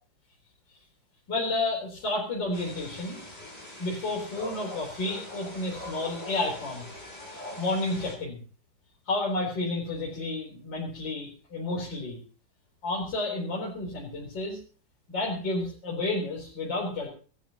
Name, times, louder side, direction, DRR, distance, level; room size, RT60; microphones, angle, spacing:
voice 1, 1.3-3.2 3.8-6.8 7.6-8.4 9.1-12.2 12.8-14.6 15.1-17.1, left 2 dB, 65° left, -3 dB, 4.5 m, -31 dB
sound 1, 2.5-8.1, left 1 dB, 20° left, 5.7 m, -42 dB
25.5 x 12.0 x 2.9 m, 0.40 s
omnidirectional pair, 2.1 m